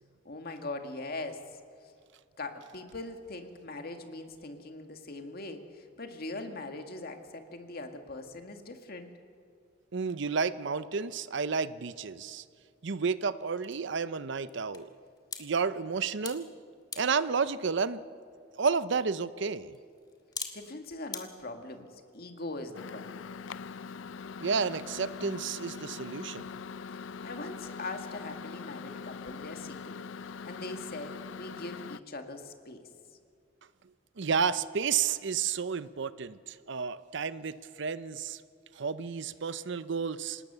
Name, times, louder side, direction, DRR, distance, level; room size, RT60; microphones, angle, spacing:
voice 1, 0.2-1.4 2.4-9.1 20.5-23.3 27.2-30.0 30.4-32.9, left 2 dB, 55° left, 5 dB, 2.0 m, -41 dB
voice 2, 9.9-12.4 12.8-14.9 15.4-16.5 17.0-18.0 18.5-19.8 24.4-26.5 34.2-38.4 38.7-40.4, right 5 dB, 65° right, 15 dB, 0.7 m, -31 dB
sound 1, 11.9-21.2, left 5 dB, 20° left, 1.9 m, -48 dB
Microwave oven, 22.7-32.0, left 5 dB, 75° left, 0.5 m, -42 dB
26.5 x 18.5 x 6.8 m, 2.2 s
head